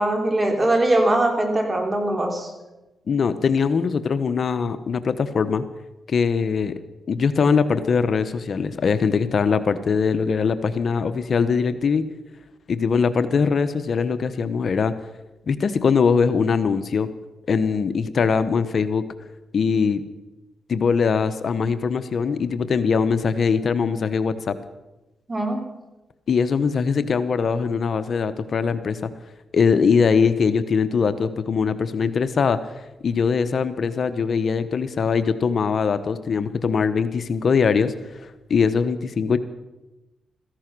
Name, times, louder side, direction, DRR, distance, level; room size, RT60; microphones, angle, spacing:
voice 1, 0.0-2.5 25.3-25.6, right 1 dB, 30° right, 3 dB, 3.9 m, -21 dB
voice 2, 3.1-5.6 6.1-6.8 7.1-12.1 12.7-14.9 15.5-17.1 17.5-19.0 19.5-20.0 20.7-24.6 26.3-29.1 29.5-32.6 33.0-39.4, left 5 dB, 55° left, 11 dB, 0.9 m, -21 dB
16.5 x 14.5 x 6.1 m, 1.0 s
cardioid pair, 80°, 0 cm